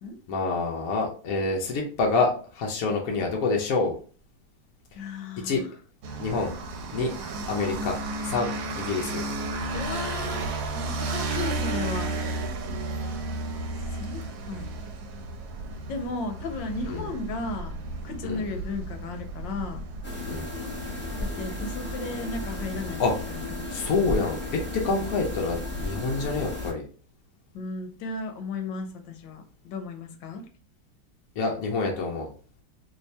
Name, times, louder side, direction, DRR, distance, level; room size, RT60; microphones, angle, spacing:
voice 1, 0.3-3.9 5.4-5.6 6.2-6.5 6.9-7.1 7.5-9.2 16.9-17.1 18.2-18.4 20.3-20.5 23.0-23.1 23.7-26.8 31.4-32.3, left 3 dB, 65° left, 0 dB, 0.9 m, -27 dB
voice 2, 4.9-5.7 9.7-12.1 14.0-14.2 14.5-14.7 15.9-17.7 18.0-19.8 21.2-23.1 23.7-23.9 27.5-30.4, left 3 dB, 80° left, 6 dB, 1.3 m, -35 dB
sound 1, 6.0-25.9, right 2 dB, 85° right, 1.4 m, -34 dB
sound 2, 20.0-26.7, left 2 dB, 10° left, 0.5 m, -34 dB
3.1 x 2.7 x 3.3 m, 0.42 s
omnidirectional pair, 2.1 m